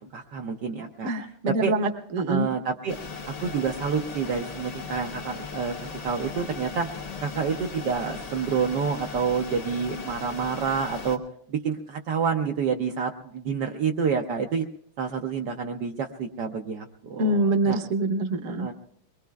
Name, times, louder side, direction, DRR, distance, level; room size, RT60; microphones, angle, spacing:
voice 1, 0.1-1.1 1.6-1.7 2.3-3.0 3.3-5.7 6.0-6.9 7.2-11.2 11.5-14.6 15.0-17.8 18.4-18.7, right 6 dB, 65° right, 2 dB, 1.3 m, -28 dB
voice 2, 1.0-2.5 17.2-18.7, right 2 dB, 50° right, 4 dB, 1.2 m, -25 dB
sound 1, 2.9-11.2, left 4 dB, 85° left, 0.3 m, -38 dB
23.5 x 21.5 x 2.3 m, 0.67 s
omnidirectional pair, 2.1 m